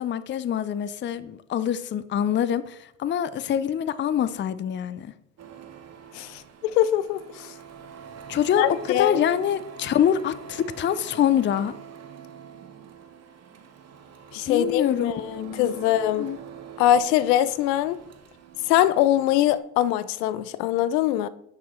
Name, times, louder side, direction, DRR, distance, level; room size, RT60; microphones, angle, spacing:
voice 1, 0.0-5.1 8.3-11.7 14.5-15.9 16.2-16.4, left 9 dB, 25° left, 0.5 m, -25 dB
Printer, 5.4-19.6, right 8 dB, 30° right, 1.0 m, -44 dB
voice 2, 6.8-7.5 8.6-9.2 14.3-16.3 16.8-18.0 18.7-21.3, left 12 dB, 80° left, 0.6 m, -22 dB
10.5 x 6.1 x 3.1 m
hypercardioid pair, 70°, 49 cm